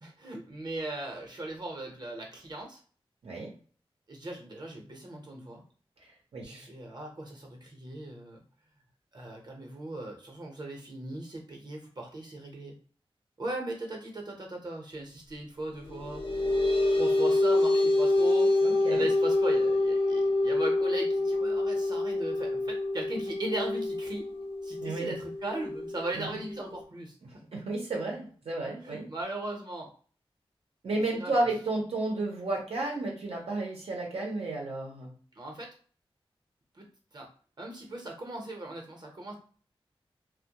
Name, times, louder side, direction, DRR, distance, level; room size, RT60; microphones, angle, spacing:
voice 1, 0.0-2.8 4.1-5.6 6.4-8.4 9.1-12.7 13.4-16.6 16.9-24.3 24.6-27.2 28.8-29.9 30.9-31.3 35.3-35.7 36.7-37.3 37.6-39.3, right 2 dB, 45° right, 1 dB, 0.7 m, -38 dB
voice 2, 6.3-6.7 18.6-19.1 24.8-25.1 26.1-26.3 27.5-29.1 30.8-35.1, right 2 dB, 85° right, -1 dB, 0.7 m, -32 dB
sound 1, 15.8-26.8, left 2 dB, 65° left, 0.6 m, -27 dB
2.1 x 2.1 x 2.8 m, 0.42 s
wide cardioid pair, 95°, 10 cm